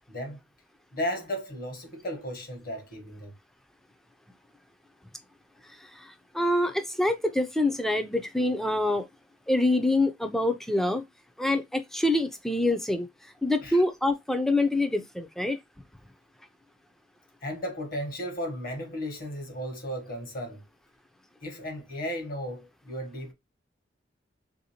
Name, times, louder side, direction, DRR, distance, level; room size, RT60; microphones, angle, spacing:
voice 1, 0.1-0.4 0.9-3.3 13.6-13.8 17.4-20.7 21.4-23.3, equal, 50° left, 1.1 m, -35 dB
voice 2, 6.0-9.1 9.5-11.0 11.4-13.1 13.4-15.6, left 1 dB, ahead, 0.4 m, -26 dB
3.4 x 2.7 x 2.8 m
head